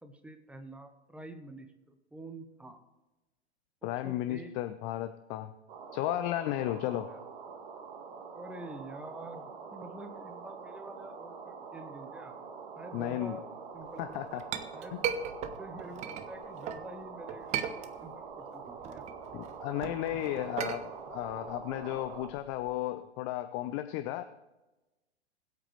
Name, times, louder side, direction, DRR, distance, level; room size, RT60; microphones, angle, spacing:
voice 1, 0.0-2.8 3.8-4.6 6.7-7.2 8.3-12.4 12.7-13.4 13.7-14.2 14.7-15.2 15.6-19.0, right 1 dB, 5° right, 7 dB, 1.0 m, -47 dB
voice 2, 3.8-5.5 5.9-7.1 12.9-13.4 14.0-14.4 14.9-15.0 19.3-24.2, left 14 dB, 25° left, 10 dB, 0.4 m, -34 dB
sound 1, 5.7-22.3, right 5 dB, 50° right, 1.7 m, -45 dB
Chink clink, 14.0-16.8 17.3-18.3 18.7-22.8, right 8 dB, 20° right, 0.7 m, -37 dB
21.0 x 8.3 x 3.3 m, 1.1 s
figure-of-eight pair, 100°, 33 cm